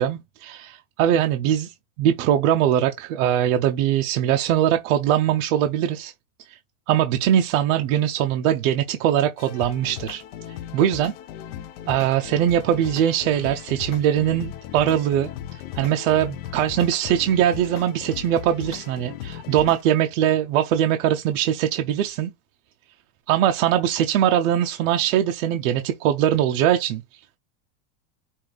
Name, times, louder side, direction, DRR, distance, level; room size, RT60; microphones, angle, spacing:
voice 1, 0.0-6.1 6.5-6.6 6.9-10.2 10.7-11.1 11.9-15.3 15.7-22.3 23.3-27.0, right 10 dB, 60° right, 0.6 m, -21 dB
sound 1, 9.4-19.8, left 11 dB, 45° left, 0.4 m, -37 dB
5.4 x 2.4 x 3.2 m
supercardioid pair, 165°, 46 cm